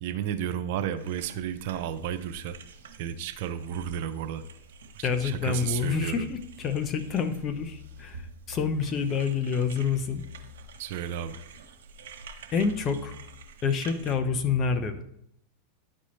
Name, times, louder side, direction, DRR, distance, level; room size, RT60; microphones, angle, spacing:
voice 1, 0.0-2.6 3.0-4.4 4.9-6.2 10.8-11.4, right 9 dB, 65° right, 10 dB, 0.6 m, -32 dB
sound 1, 1.0-14.1, right 4 dB, 80° right, 1.0 m, -48 dB
voice 2, 5.0-8.2 8.5-10.2 12.5-13.2 13.6-15.0, left 6 dB, 35° left, 10 dB, 0.8 m, -27 dB
11.0 x 4.3 x 3.2 m, 0.75 s
hypercardioid pair, 115°, 0 cm